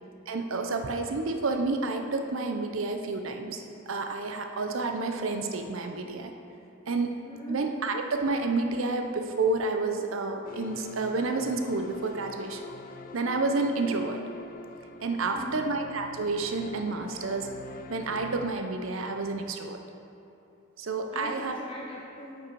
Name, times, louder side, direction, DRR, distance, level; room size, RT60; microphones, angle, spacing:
voice 1, 0.3-6.3 6.9-7.2 7.5-12.6 13.1-14.2 15.0-17.5 17.9-19.8 20.8-21.6, right 3 dB, 80° right, 5 dB, 0.7 m, -30 dB
voice 2, 7.2-7.6 15.3-15.7 21.1-22.5, left 1 dB, 25° left, -4 dB, 0.7 m, -41 dB
sound 1, 10.4-18.5, left 4 dB, 45° left, 0.3 m, -45 dB
7.9 x 6.1 x 4.6 m, 2.8 s
head